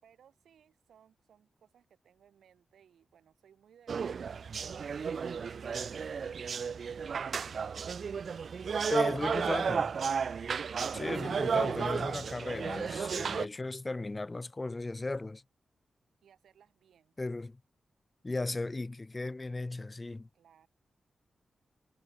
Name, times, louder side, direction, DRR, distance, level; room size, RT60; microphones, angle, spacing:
voice 1, 0.0-5.1 16.2-17.1 20.3-20.7, right 8 dB, 85° right, 4.4 m, -64 dB
sound 1, 3.9-13.5, right 6 dB, 70° right, 0.6 m, -33 dB
voice 2, 8.9-9.9 10.9-15.4 17.2-17.6 18.2-20.3, left 2 dB, 30° left, 1.2 m, -36 dB
supercardioid pair, 45°, 0 cm